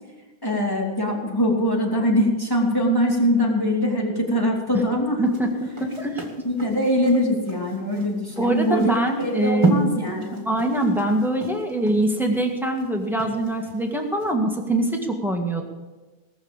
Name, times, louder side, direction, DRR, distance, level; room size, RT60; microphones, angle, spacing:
voice 1, 0.4-5.2 5.5-5.6 6.4-10.4, equal, 20° left, -3 dB, 3.1 m, -22 dB
sound 1, 5.3-13.8 14.2-14.3, right 2 dB, 30° right, 2.0 m, -29 dB
voice 2, 5.8-6.2 8.4-9.8 10.1-10.2 10.5-15.6, right 1 dB, ahead, 1 dB, 1.8 m, -23 dB
19.0 x 7.0 x 7.3 m, 1.2 s
omnidirectional pair, 1.0 m